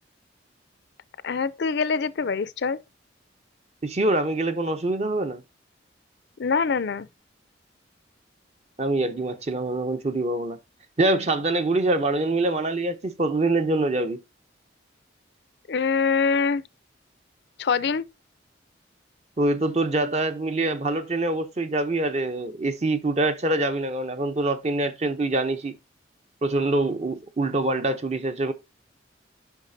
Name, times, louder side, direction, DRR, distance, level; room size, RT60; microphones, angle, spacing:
voice 1, 1.2-2.8 6.4-7.1 15.7-16.6 17.6-18.0, left 5 dB, 60° left, 0.4 m, -24 dB
voice 2, 3.8-5.4 8.8-10.6 11.0-14.2 19.4-25.7 26.4-28.5, right 2 dB, 35° right, 0.7 m, -25 dB
8.1 x 5.6 x 2.7 m
head